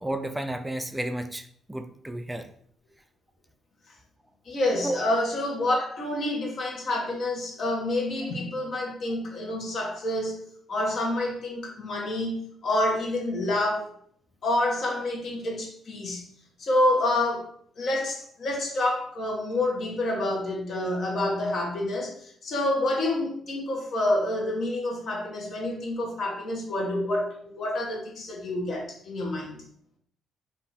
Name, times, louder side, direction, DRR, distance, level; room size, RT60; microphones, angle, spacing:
voice 1, 0.0-1.4 1.7-2.5 4.8-5.0, right 1 dB, 10° right, 0.4 m, -32 dB
voice 2, 4.5-13.9 14.4-16.3 16.6-17.5 17.8-29.6, left 1 dB, 60° left, 1.1 m, -28 dB
3.7 x 2.4 x 4.1 m
cardioid pair, 90°, 0 cm